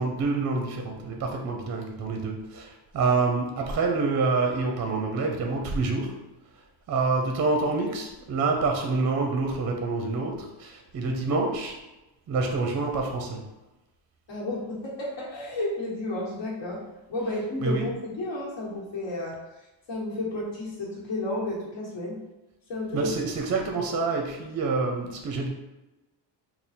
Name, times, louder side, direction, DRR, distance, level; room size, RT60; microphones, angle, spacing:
voice 1, 0.0-6.3 6.9-11.8 12.3-13.5 17.6-17.9 22.9-25.5, right 3 dB, 40° right, 2 dB, 0.5 m, -27 dB
voice 2, 14.3-16.8 17.1-19.4 19.9-22.2 22.7-23.1, left 2 dB, 75° left, -4 dB, 1.4 m, -32 dB
3.6 x 2.3 x 4.2 m, 1.0 s
cardioid pair, 165°, 44 cm